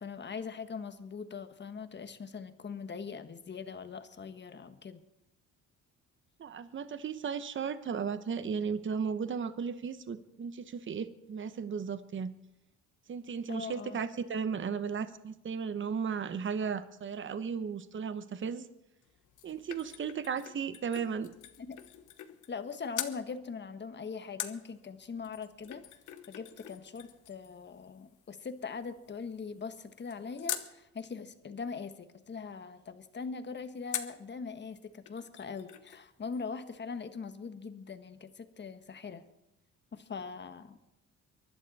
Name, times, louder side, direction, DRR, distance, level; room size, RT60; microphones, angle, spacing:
voice 1, 0.0-5.0 13.5-14.0 21.6-21.8 22.5-25.8 26.3-39.2 39.9-40.8, left 5 dB, 35° left, 9 dB, 1.4 m, -41 dB
voice 2, 6.4-12.3 13.1-18.7 19.4-21.3, right 6 dB, 40° right, 12 dB, 1.0 m, -35 dB
sound 1, 19.0-22.7 22.9-23.2 24.4-30.7 33.9-34.3 34.7-34.8 35.1-36.1 36.3-36.4, left 11 dB, 80° left, 1.2 m, -43 dB
23.5 x 11.5 x 4.2 m, 0.88 s
cardioid pair, 90°, 30 cm